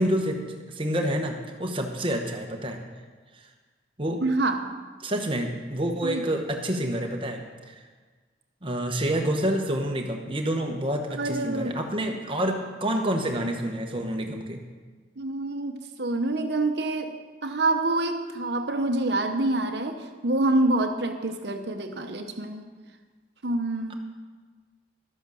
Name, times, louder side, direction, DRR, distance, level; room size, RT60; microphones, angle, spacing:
voice 1, 0.0-2.8 3.3-3.5 4.0-4.2 5.0-7.8 8.6-14.6, right 1 dB, 25° right, 3 dB, 1.1 m, -28 dB
voice 2, 4.2-4.6 6.0-6.2 11.1-11.7 15.2-17.1 17.4-22.6 23.4-23.9, right 2 dB, 60° right, 6 dB, 1.0 m, -26 dB
12.0 x 8.0 x 6.3 m, 1.4 s
head